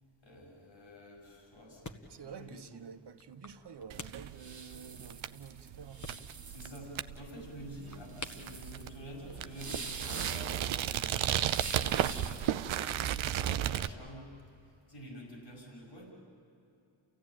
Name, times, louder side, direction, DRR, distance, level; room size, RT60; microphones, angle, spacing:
voice 1, 0.2-2.8 6.5-11.3 11.7-14.3 14.9-16.1, equal, 70° left, 5.9 m, -48 dB
sound 1, 1.1-9.9, left 2 dB, 40° left, 1.6 m, -52 dB
voice 2, 2.1-6.1, right 6 dB, 60° right, 1.2 m, -49 dB
sound 2, 3.9-12.6, right 4 dB, 40° right, 1.6 m, -45 dB
sound 3, 3.9-13.9, right 11 dB, 85° right, 0.6 m, -35 dB
28.5 x 16.0 x 9.1 m
cardioid pair, 45°, 46 cm